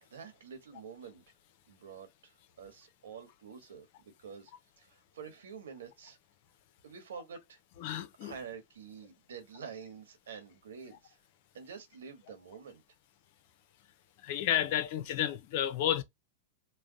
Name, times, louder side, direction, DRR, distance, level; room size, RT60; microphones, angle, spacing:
voice 1, 0.0-1.2 1.7-4.5 4.8-6.2 6.8-7.6 8.2-11.2 11.5-12.8, right 6 dB, 85° right, 1.4 m, -48 dB
voice 2, 7.8-8.3 14.2-16.0, left 11 dB, 60° left, 0.7 m, -31 dB
3.3 x 2.2 x 3.9 m
hypercardioid pair, 125°, 0 cm